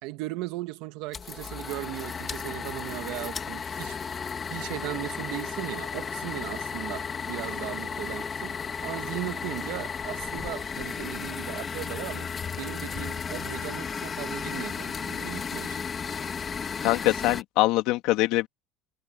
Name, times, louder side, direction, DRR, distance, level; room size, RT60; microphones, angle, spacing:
voice 1, 0.0-4.0 4.5-12.3 12.5-15.8, right 19 dB, 70° right, 1.8 m, -37 dB
sound 1, 1.1-17.4, left 6 dB, 25° left, 2.3 m, -34 dB
voice 2, 16.8-18.5, left 18 dB, 65° left, 2.2 m, -23 dB
cardioid pair, 155°, 0 cm